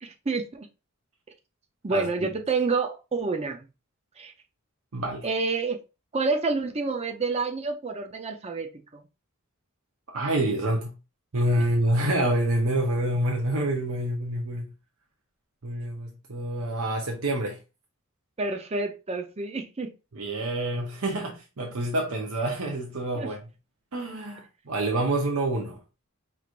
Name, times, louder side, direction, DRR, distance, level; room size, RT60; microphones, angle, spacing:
voice 1, 0.0-0.7 1.8-3.7 4.2-4.3 5.2-5.8 6.1-9.0 18.4-19.9 23.2-23.3, right 4 dB, 30° right, 0.6 m, -28 dB
voice 2, 4.9-5.3 10.1-11.0 11.3-14.7 15.6-17.6 20.1-23.4 23.9-25.8, right 1 dB, 80° right, 0.8 m, -27 dB
4.7 x 3.3 x 2.5 m
head